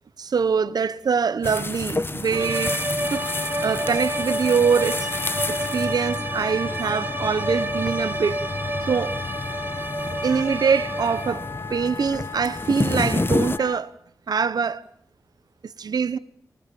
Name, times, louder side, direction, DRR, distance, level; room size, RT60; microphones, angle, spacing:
voice 1, 0.2-3.3 3.6-5.1 5.5-8.5 8.8-9.2 10.2-13.9 14.3-14.8 15.6-16.2, right 6 dB, 75° right, 1.2 m, -24 dB
sound 1, 1.4-13.6, left 2 dB, 35° left, 1.4 m, -30 dB
sound 2, 2.3-11.5, right 1 dB, 30° right, 2.3 m, -29 dB
Wind instrument woodwind instrument, 3.0-13.8, left 5 dB, 65° left, 2.0 m, -37 dB
29.0 x 26.5 x 7.2 m
cardioid pair, 65°, 7 cm